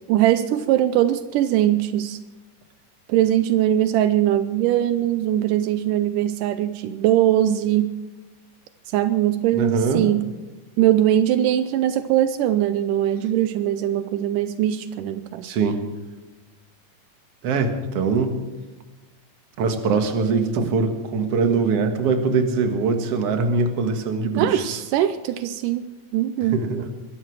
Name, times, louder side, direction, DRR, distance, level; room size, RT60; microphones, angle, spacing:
voice 1, 0.1-2.2 3.1-7.9 8.9-10.3 10.8-15.5 20.6-20.7 24.3-25.9 26.1-26.6, right 12 dB, 85° right, 12 dB, 2.3 m, -21 dB
voice 2, 9.5-10.1 15.4-15.8 17.4-18.4 19.6-24.8 26.4-26.9, right 4 dB, 55° right, 6 dB, 2.4 m, -22 dB
22.5 x 13.5 x 4.7 m, 1.1 s
omnidirectional pair, 3.7 m